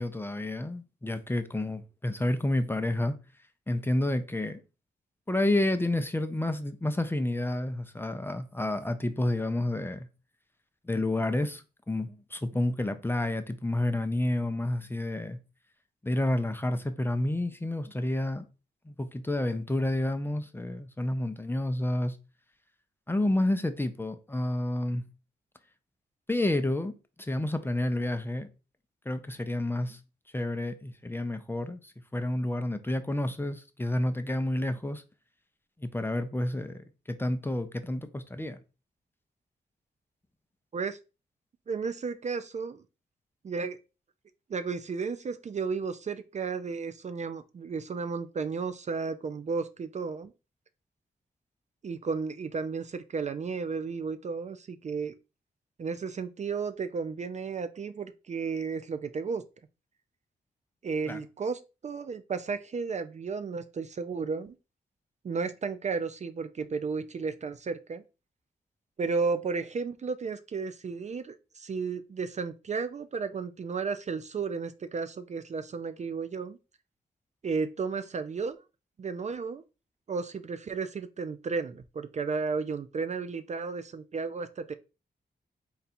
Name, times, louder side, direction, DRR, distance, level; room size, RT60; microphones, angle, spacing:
voice 1, 0.0-3.2 3.7-4.6 5.3-10.1 10.8-15.4 16.0-18.5 18.9-22.2 23.1-25.1 26.3-26.9 27.2-28.5 29.1-30.0 30.3-35.0 35.8-38.6 61.1-61.2, left 1 dB, 10° left, 0.5 m, -30 dB
voice 2, 41.7-42.8 43.4-43.8 44.5-50.3 51.8-55.1 55.8-59.4 60.8-64.6 65.2-68.0 69.0-76.6 77.4-78.6 79.0-79.6 80.1-84.7, right 5 dB, 40° right, 0.4 m, -33 dB
3.9 x 2.3 x 4.1 m
cardioid pair, 75°, 18 cm